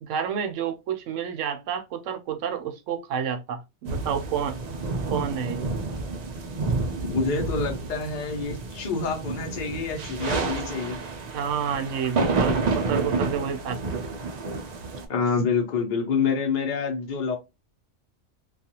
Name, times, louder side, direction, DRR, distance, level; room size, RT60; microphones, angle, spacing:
voice 1, 0.0-4.6 5.1-5.7 11.3-14.1, right 7 dB, 85° right, 0.9 m, -29 dB
sound 1, 3.9-15.0, right 3 dB, 65° right, 0.4 m, -29 dB
voice 2, 7.0-11.0 15.1-17.4, left 5 dB, 45° left, 0.8 m, -27 dB
2.4 x 2.3 x 2.8 m
omnidirectional pair, 1.3 m